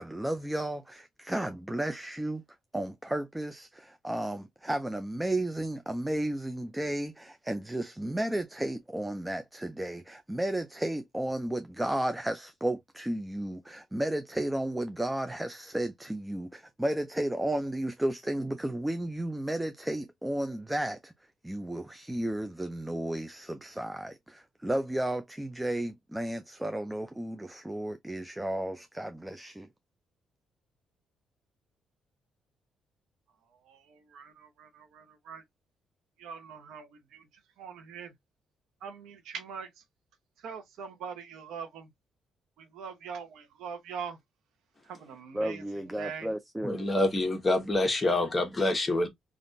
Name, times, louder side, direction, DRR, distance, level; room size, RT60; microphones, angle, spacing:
voice 1, 0.0-2.4 2.7-21.1 21.4-29.7 45.3-46.8, right 1 dB, 10° right, 0.4 m, -33 dB
voice 2, 33.6-35.4 36.2-37.3 37.6-38.1 38.8-39.7 40.4-41.9 42.6-44.2 44.8-46.3, right 6 dB, 85° right, 0.8 m, -42 dB
voice 3, 46.6-49.1, left 2 dB, 20° left, 1.2 m, -26 dB
3.4 x 2.4 x 2.5 m
cardioid pair, 90°, 0 cm